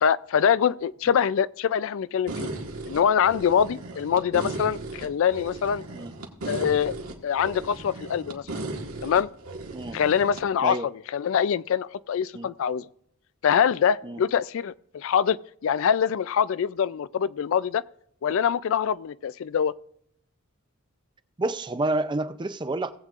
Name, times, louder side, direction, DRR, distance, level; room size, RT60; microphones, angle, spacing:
voice 1, 0.0-2.5 2.9-5.8 6.5-7.0 7.2-8.4 9.0-9.3 9.9-10.8 11.1-12.9 13.4-15.4 15.6-17.8 18.2-19.7, left 8 dB, 65° left, 0.3 m, -24 dB
sound 1, 2.3-10.4, right 2 dB, 80° right, 1.7 m, -36 dB
voice 2, 21.4-22.9, right 2 dB, 20° right, 0.5 m, -29 dB
18.5 x 8.1 x 2.5 m
head